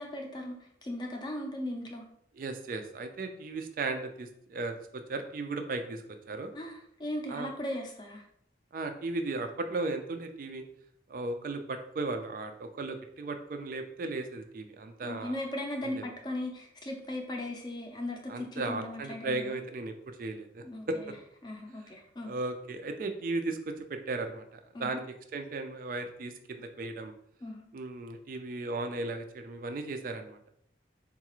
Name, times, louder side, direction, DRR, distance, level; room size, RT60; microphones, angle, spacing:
voice 1, 0.0-2.0 6.5-8.2 15.0-19.6 20.6-21.1 21.4-22.3 24.7-25.0 27.4-27.6, left 1 dB, 25° left, 2 dB, 0.4 m, -38 dB
voice 2, 2.3-6.5 7.3-7.5 8.7-10.6 11.1-15.4 15.8-16.0 18.3-21.1 22.2-25.0 25.3-27.1 27.7-30.4, right 3 dB, 50° right, 6 dB, 0.3 m, -36 dB
3.9 x 2.4 x 2.9 m, 0.71 s
head